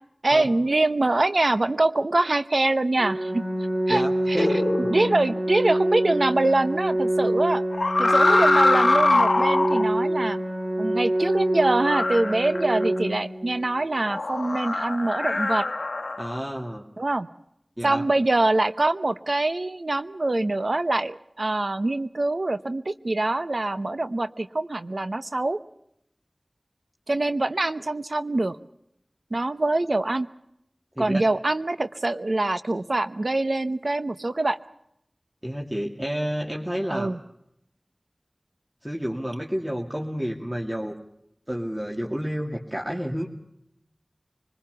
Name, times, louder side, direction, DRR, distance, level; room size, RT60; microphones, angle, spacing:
voice 1, 0.2-3.4 3.9-4.6 4.9-7.6 8.0-10.4 10.8-15.7 17.0-17.3 17.8-25.6 27.1-28.6 29.3-30.3 31.0-34.6 36.9-37.2, right 2 dB, 75° right, 11 dB, 0.9 m, -24 dB
Organ, 3.0-14.0, right 1 dB, 35° right, 2.9 m, -26 dB
voice 2, 3.9-4.5 4.8-4.9 16.2-16.8 17.8-18.0 31.0-31.2 35.4-37.1 38.8-40.9 41.5-43.3, equal, 20° right, -1 dB, 2.5 m, -30 dB
sound 1, 4.4-5.4 7.7-9.9 11.6-13.0 14.1-16.4, left 2 dB, 85° left, 0.9 m, -23 dB
24.5 x 20.5 x 6.9 m, 0.77 s
wide cardioid pair, 45°, 0 cm